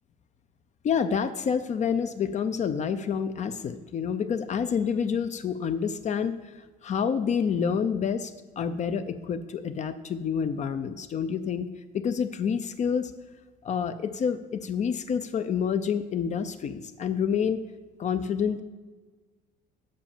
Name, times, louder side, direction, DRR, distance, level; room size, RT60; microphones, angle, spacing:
voice 1, 0.8-11.7 11.9-13.1 13.6-17.6 18.0-18.6, left 7 dB, 45° left, 9 dB, 0.6 m, -28 dB
7.5 x 5.6 x 7.2 m, 1.3 s
cardioid pair, 110°, 17 cm